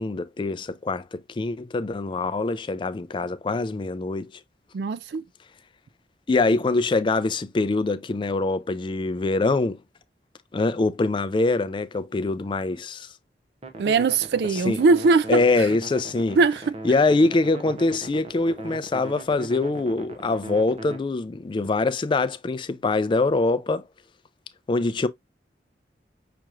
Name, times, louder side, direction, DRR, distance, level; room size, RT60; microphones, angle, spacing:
voice 1, 0.0-4.4 6.3-9.8 10.5-13.1 14.5-14.8 15.3-16.4 16.8-23.9 24.7-25.1, left 3 dB, 30° left, 0.3 m, -24 dB
voice 2, 4.7-5.2 13.8-15.4 16.4-16.6, right 4 dB, 65° right, 0.3 m, -20 dB
sound 1, 13.6-21.0, right 2 dB, 35° right, 0.7 m, -39 dB
5.9 x 2.9 x 2.4 m
head